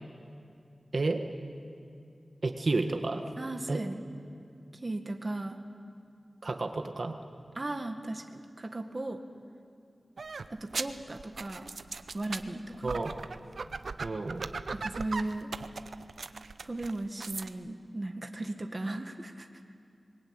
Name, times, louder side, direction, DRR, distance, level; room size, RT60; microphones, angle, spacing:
voice 1, 0.9-1.2 2.4-3.2 3.7-3.8 6.4-7.1 12.8-13.1 14.0-14.5, right 3 dB, 60° right, 5 dB, 1.6 m, -30 dB
voice 2, 3.4-4.0 4.8-5.6 7.5-9.2 10.5-11.7 12.1-12.9 14.7-15.5 16.6-19.5, right 2 dB, 40° right, 5 dB, 1.7 m, -36 dB
sound 1, 10.2-17.5, right 4 dB, 85° right, 0.8 m, -39 dB
25.5 x 22.0 x 8.9 m, 2.4 s
wide cardioid pair, 70°, 0 cm